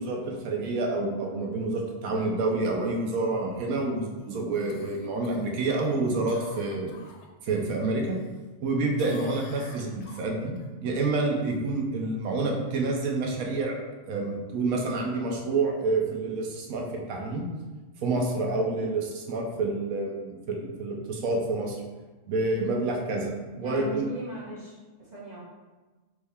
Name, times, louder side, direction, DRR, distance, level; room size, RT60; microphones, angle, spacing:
voice 1, 0.0-6.9 7.4-8.2 8.6-10.5 10.8-13.8 14.0-17.4 18.0-21.8 22.3-24.1, right 3 dB, 80° right, 0 dB, 1.1 m, -28 dB
Cough, 4.7-7.7 8.1-8.7 9.0-10.7 15.1-15.2, left 4 dB, 65° left, 0.7 m, -49 dB
voice 2, 23.6-25.4, right 1 dB, 30° right, -8 dB, 1.4 m, -39 dB
4.8 x 2.7 x 3.4 m, 1.3 s
omnidirectional pair, 1.5 m